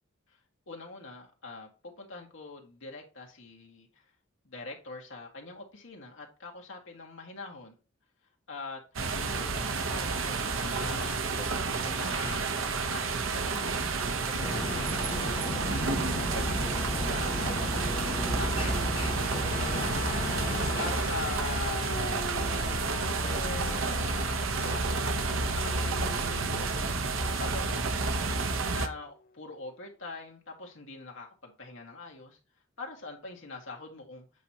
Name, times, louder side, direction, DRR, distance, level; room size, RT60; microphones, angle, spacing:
voice 1, 0.7-4.1 4.4-7.7 8.5-8.8 9.1-11.5 11.8-12.6 12.8-16.7 17.1-20.2 20.8-22.9 23.2-25.1 25.5-27.0 27.4-27.9 28.7-32.4 32.8-34.3, left 3 dB, 70° left, 0 dB, 1.8 m, -44 dB
sound 1, 8.9-28.9, right 3 dB, 80° right, 0.9 m, -30 dB
sound 2, 14.4-20.9, left 1 dB, 25° left, 1.1 m, -35 dB
sound 3, 19.5-27.6 28.9-29.0, left 5 dB, 45° left, 0.4 m, -42 dB
8.2 x 2.9 x 4.7 m, 0.32 s
head